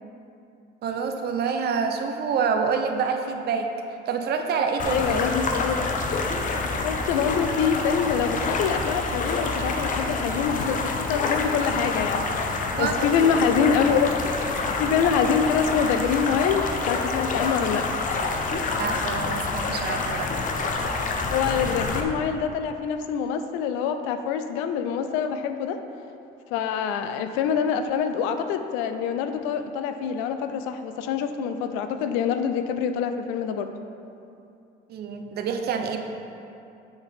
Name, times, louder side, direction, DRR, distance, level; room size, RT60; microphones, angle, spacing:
voice 1, 0.8-5.2 12.8-13.1 18.8-20.3 34.9-36.0, right 5 dB, 55° right, 5 dB, 0.7 m, -27 dB
sound 1, 4.8-22.0, left 3 dB, 40° left, 0.7 m, -27 dB
voice 2, 4.9-5.8 6.8-14.2 14.8-17.8 21.3-25.8 26.5-33.7, left 7 dB, 90° left, 8 dB, 0.5 m, -25 dB
7.0 x 5.7 x 3.5 m, 2.7 s
supercardioid pair, 95°, 20 cm